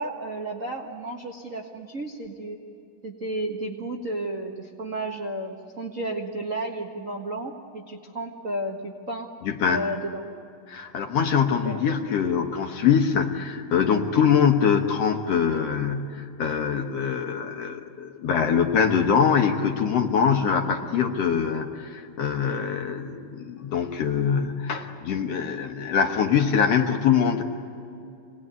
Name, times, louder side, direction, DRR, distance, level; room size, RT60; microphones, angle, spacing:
voice 1, 0.0-2.6 3.0-9.3 9.7-10.2 11.6-11.8, right 1 dB, 50° right, 1 dB, 0.9 m, -32 dB
voice 2, 9.4-9.8 10.7-27.4, left 7 dB, 60° left, 3 dB, 1.8 m, -23 dB
26.5 x 19.5 x 9.4 m, 2.7 s
omnidirectional pair, 4.0 m